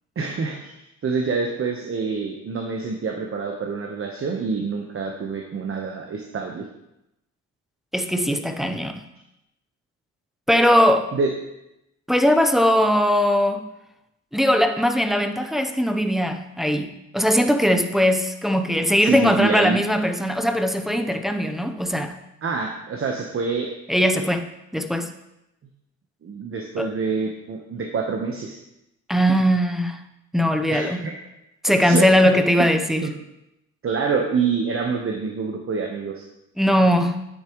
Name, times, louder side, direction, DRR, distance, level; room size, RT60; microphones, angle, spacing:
voice 1, 0.2-0.7 1.0-6.7 11.1-11.3 19.0-19.8 22.4-23.7 26.2-28.6 30.7-31.2 31.8-32.1 33.0-33.1 33.8-36.2, right 5 dB, 45° right, 2 dB, 1.1 m, -26 dB
voice 2, 7.9-9.0 10.5-11.1 12.1-13.7 14.3-22.2 23.9-24.5 24.7-25.1 26.8-26.9 29.1-30.0 30.3-31.1 31.6-33.1 36.6-37.3, equal, ahead, 6 dB, 0.7 m, -20 dB
9.5 x 8.6 x 3.1 m, 0.88 s
cardioid pair, 90°, 30 cm